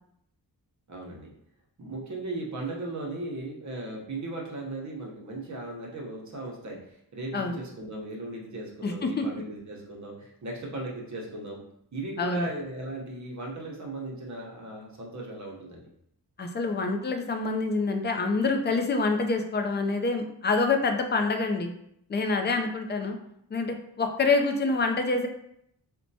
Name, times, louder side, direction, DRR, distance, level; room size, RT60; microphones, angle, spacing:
voice 1, 0.9-1.3 1.8-11.6 11.9-15.9, right 2 dB, 50° right, -2 dB, 0.8 m, -37 dB
voice 2, 8.8-9.3 12.2-12.5 16.4-21.7 22.1-23.2 23.5-25.3, left 3 dB, 30° left, 4 dB, 0.4 m, -26 dB
4.3 x 2.2 x 2.7 m, 0.74 s
wide cardioid pair, 130°, 38 cm